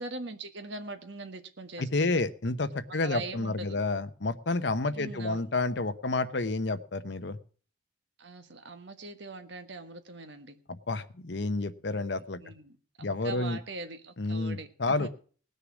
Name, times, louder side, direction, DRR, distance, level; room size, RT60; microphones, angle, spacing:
voice 1, 0.0-2.2 3.0-3.8 4.9-5.5 8.2-10.6 12.4-15.1, right 3 dB, 65° right, 8 dB, 1.5 m, -42 dB
voice 2, 1.8-7.4 10.7-12.4 13.0-13.6 14.2-15.1, left 3 dB, 60° left, 11 dB, 0.8 m, -30 dB
19.0 x 6.7 x 6.2 m, 0.43 s
head